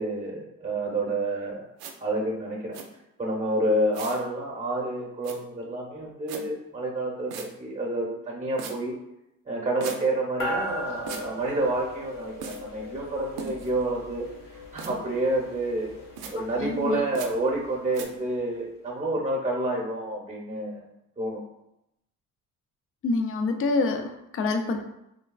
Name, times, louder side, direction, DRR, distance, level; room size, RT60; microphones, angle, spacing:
voice 1, 0.0-1.6 2.0-2.7 3.2-8.9 9.5-14.2 14.7-15.9 16.3-20.8 21.2-21.4, right 1 dB, 20° right, -2 dB, 0.8 m, -29 dB
sound 1, 1.8-1.9 2.7-2.8 3.9-4.2 5.2-5.4 6.3-6.4 7.3-7.5 8.6-8.7 9.8-10.0 11.1-11.2 12.4-12.6 13.4-13.7 14.8-14.9 16.2-16.3 17.1-17.3 17.9-18.0, right 6 dB, 85° right, 0.5 m, -37 dB
sound 2, 10.4-18.1, equal, 65° left, 0.8 m, -38 dB
voice 2, 16.6-17.0 23.0-24.8, left 3 dB, 40° left, 5 dB, 0.5 m, -26 dB
3.4 x 2.2 x 2.3 m, 0.83 s
supercardioid pair, 65°, 36 cm